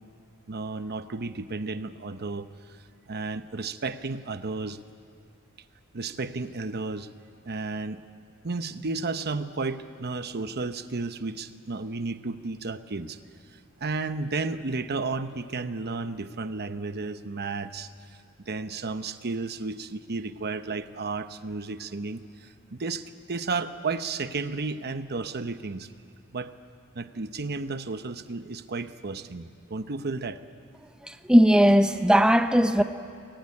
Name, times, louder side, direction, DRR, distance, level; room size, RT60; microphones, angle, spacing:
voice 1, 0.5-4.8 5.9-7.1 7.4-8.0 8.4-13.2 13.5-18.2 18.5-25.9 26.3-26.5 26.9-30.4, right 3 dB, 45° right, 0.9 m, -33 dB
voice 2, 31.0-32.8, equal, 5° right, 0.7 m, -18 dB
23.5 x 20.5 x 9.8 m
head